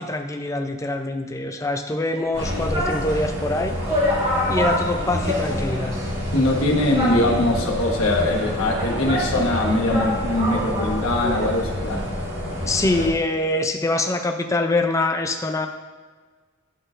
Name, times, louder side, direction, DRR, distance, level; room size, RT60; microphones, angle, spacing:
voice 1, 0.0-3.7 4.5-6.0 12.6-15.7, left 2 dB, 15° left, 6 dB, 0.4 m, -24 dB
sound 1, 2.1-3.1 3.5-3.6 3.9-5.9 6.2-6.3 6.9-7.7 8.4-11.6 11.8-11.9, left 1 dB, 30° right, 1.9 m, -27 dB
sound 2, 2.3-13.1, equal, 70° right, 1.6 m, -28 dB
voice 2, 6.3-12.0, left 1 dB, 90° left, -1 dB, 1.2 m, -22 dB
11.0 x 4.2 x 2.5 m, 1.4 s
head